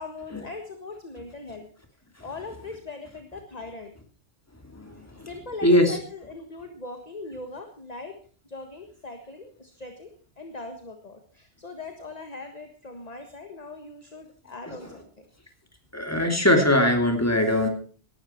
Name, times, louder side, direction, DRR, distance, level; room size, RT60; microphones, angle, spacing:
voice 1, 0.0-1.7 2.2-3.9 5.2-8.1 8.4-10.1 10.4-15.2, left 3 dB, 35° left, 5 dB, 1.6 m, -40 dB
voice 2, 4.7-5.3 5.6-6.0 14.7-14.8 15.9-17.7, left 1 dB, 15° left, 4 dB, 2.8 m, -21 dB
18.5 x 12.0 x 4.5 m, 0.43 s
omnidirectional pair, 1.1 m